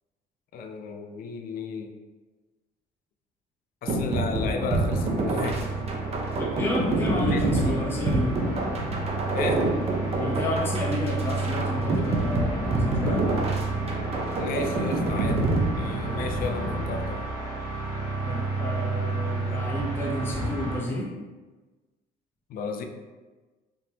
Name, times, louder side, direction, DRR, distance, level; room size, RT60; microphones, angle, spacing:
voice 1, 0.5-2.0 3.8-5.7 7.3-7.9 9.3-9.7 14.4-15.4 15.8-17.3 22.5-22.8, left 4 dB, 60° left, 5 dB, 0.4 m, -33 dB
sound 1, 3.9-16.4, right 2 dB, 35° right, 0.6 m, -27 dB
sound 2, 4.3-20.8, right 2 dB, 20° right, 1.4 m, -31 dB
voice 2, 6.4-8.3 10.2-13.2 18.2-21.1, left 1 dB, 15° left, -4 dB, 0.6 m, -30 dB
3.6 x 2.8 x 2.7 m, 1.3 s
cardioid pair, 110°, 17 cm